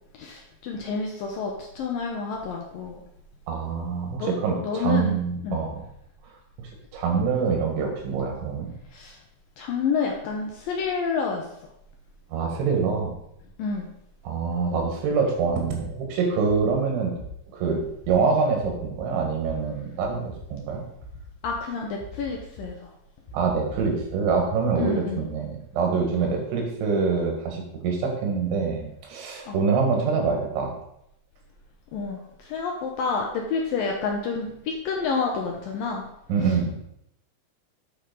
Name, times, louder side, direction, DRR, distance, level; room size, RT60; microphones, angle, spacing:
voice 1, 0.1-3.0 4.2-4.3 4.6-5.6 8.9-9.2 9.6-11.5 13.6-13.9 21.4-22.9 24.8-25.2 29.5-29.6 31.9-36.0 36.4-36.5, left 5 dB, 80° left, 0 dB, 2.1 m, -29 dB
voice 2, 3.5-5.8 6.9-8.7 12.3-13.1 14.2-17.1 17.5-17.8 18.1-20.8 23.3-30.7 36.3-36.7, right 5 dB, 90° right, 1 dB, 4.1 m, -25 dB
sound 1, 15.5-15.9 16.5-16.7 17.2-17.3 17.8-18.1 18.6-19.0 19.5-19.6 20.0-20.4 21.0-21.5 22.0-22.7 23.3-24.4, right 1 dB, 60° left, 3.0 m, -41 dB
9.0 x 4.9 x 5.3 m, 0.77 s
omnidirectional pair, 5.2 m